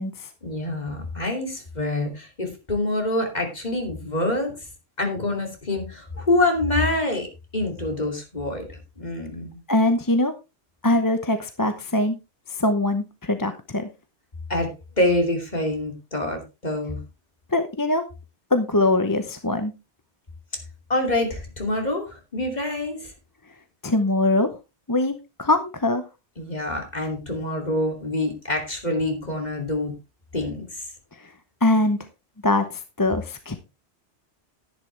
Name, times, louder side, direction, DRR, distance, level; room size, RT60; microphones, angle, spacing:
voice 1, 0.4-4.7 5.0-8.6 9.0-9.6 14.5-17.0 20.9-23.1 26.4-29.9 30.3-30.9, left 2 dB, 40° left, 3 dB, 3.0 m, -26 dB
voice 2, 9.7-10.3 10.8-12.2 12.6-13.9 17.5-18.0 18.5-19.7 23.8-24.5 24.9-26.0 31.6-32.0 32.4-33.6, left 2 dB, 20° left, 8 dB, 0.8 m, -22 dB
11.0 x 10.5 x 3.3 m, 0.26 s
omnidirectional pair, 1.2 m